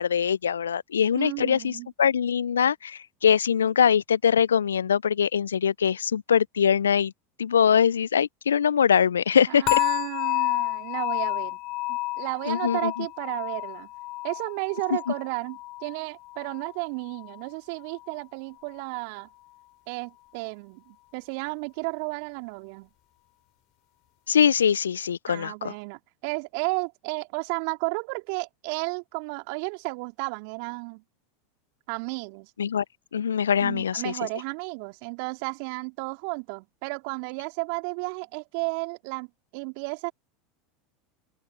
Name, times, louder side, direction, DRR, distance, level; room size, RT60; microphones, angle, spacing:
voice 1, 0.0-7.1 7.4-9.8 12.5-13.1 24.3-25.7 32.6-32.8 33.1-34.1, left 8 dB, 80° left, 0.5 m, -23 dB
voice 2, 1.1-1.9 9.5-11.6 11.9-13.9 14.2-19.3 19.9-22.9 25.3-31.0 31.9-32.5 33.6-39.3 39.5-40.1, right 36 dB, 60° right, 2.9 m, -33 dB
sound 1, 9.7-16.7 17.0-17.4 17.9-18.0, left 21 dB, 50° left, 3.0 m, -30 dB
open air
figure-of-eight pair, 80°, 0 cm